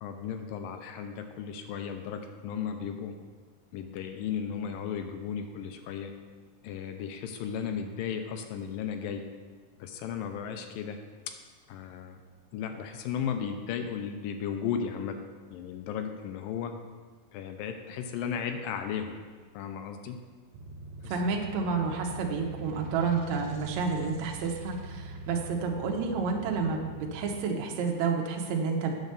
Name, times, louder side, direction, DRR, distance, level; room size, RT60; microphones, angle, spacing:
voice 1, 0.0-3.2 3.7-6.1 6.6-9.3 9.8-11.0 11.7-12.2 12.5-15.2 15.5-16.7 17.3-19.2 19.5-20.2 21.0-21.2, left 7 dB, 80° left, 6 dB, 2.2 m, -35 dB
sound 1, 20.5-27.4, right 2 dB, 80° right, 2.6 m, -43 dB
voice 2, 21.1-28.9, right 5 dB, 65° right, 1 dB, 1.9 m, -30 dB
9.3 x 5.0 x 6.7 m, 1.5 s
omnidirectional pair, 4.1 m